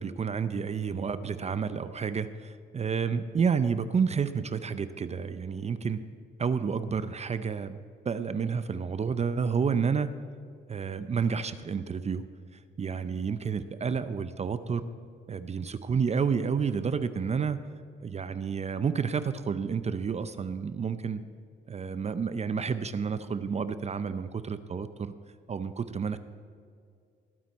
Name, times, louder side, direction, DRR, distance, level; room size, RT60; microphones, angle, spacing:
voice 1, 0.0-6.0 6.4-10.1 10.7-12.2 12.8-14.8 15.3-17.6 18.0-21.2 21.7-25.1 25.5-26.2, right 6 dB, 35° right, 12 dB, 0.6 m, -30 dB
19.0 x 8.8 x 4.2 m, 2.4 s
cardioid pair, 90°, 20 cm